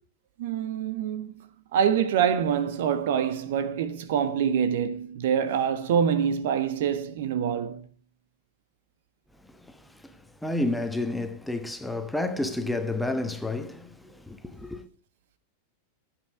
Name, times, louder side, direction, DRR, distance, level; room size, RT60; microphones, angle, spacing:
voice 1, 0.4-7.8, right 8 dB, 55° right, 1.4 m, -26 dB
voice 2, 10.4-14.9, left 2 dB, 5° left, 1.4 m, -30 dB
15.0 x 8.3 x 4.6 m
figure-of-eight pair, 90°, 0 cm